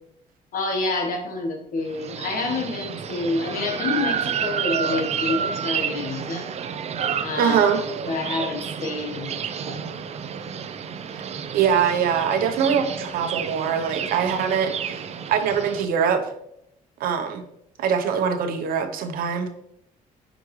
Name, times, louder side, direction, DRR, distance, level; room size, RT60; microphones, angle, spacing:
voice 1, 0.5-6.5 7.2-7.6 8.1-9.4 9.6-9.9, left 3 dB, 70° left, 3 dB, 1.5 m, -28 dB
sound 1, 1.9-15.9, right 7 dB, 45° right, 0.6 m, -30 dB
voice 2, 7.4-7.8 11.1-11.2 11.5-15.0 15.3-16.3 17.0-17.4 17.8-19.6, right 7 dB, 85° right, 7 dB, 0.9 m, -23 dB
8.6 x 5.1 x 3.2 m, 0.76 s
cardioid pair, 110°, 15 cm